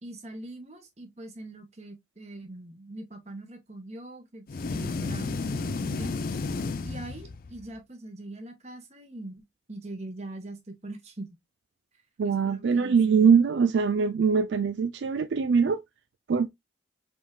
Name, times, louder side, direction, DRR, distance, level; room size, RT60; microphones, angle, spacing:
voice 1, 0.0-4.4 4.7-6.1 6.8-9.4 9.7-11.3 12.2-13.3, right 2 dB, 35° right, 1.3 m, -42 dB
sound 1, 4.5-7.7, left 3 dB, 50° left, 0.4 m, -32 dB
voice 2, 12.2-15.8 16.3-16.5, right 6 dB, 75° right, 0.4 m, -22 dB
5.2 x 3.6 x 2.3 m
head